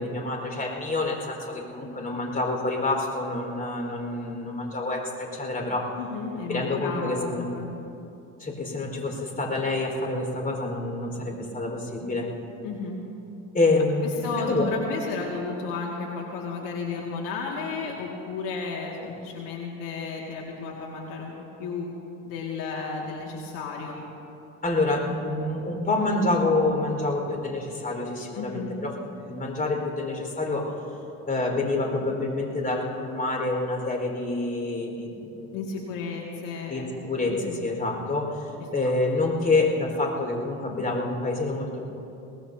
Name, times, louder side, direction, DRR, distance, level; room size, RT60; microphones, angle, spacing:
voice 1, 0.0-5.9 6.5-7.5 8.4-12.3 13.5-14.6 24.6-30.6 31.3-35.7 36.7-38.3 38.7-41.8, left 2 dB, 25° left, 0 dB, 4.6 m, -27 dB
voice 2, 6.0-7.7 12.6-13.0 14.0-21.3 21.6-21.9 22.3-24.0 28.3-28.7 35.5-36.9 37.3-37.6, left 4 dB, 75° left, -1 dB, 2.2 m, -33 dB
23.5 x 19.0 x 2.8 m, 2.8 s
supercardioid pair, 105°, 35 cm